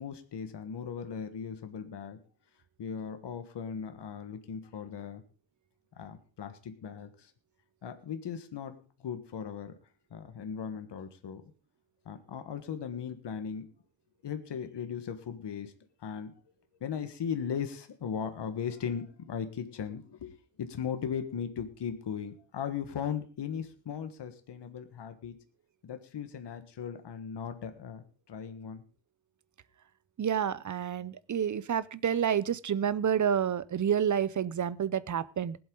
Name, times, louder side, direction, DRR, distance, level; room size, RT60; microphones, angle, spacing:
voice 1, 0.0-2.2 2.8-5.2 6.0-7.3 7.8-9.8 10.1-11.4 12.0-13.7 14.2-15.7 16.0-16.3 16.8-25.3 25.8-28.8, left 7 dB, 65° left, 8 dB, 1.5 m, -38 dB
voice 2, 30.2-35.6, right 8 dB, 40° right, 19 dB, 0.7 m, -29 dB
20.5 x 7.9 x 3.8 m, 0.34 s
cardioid pair, 105°, 45 cm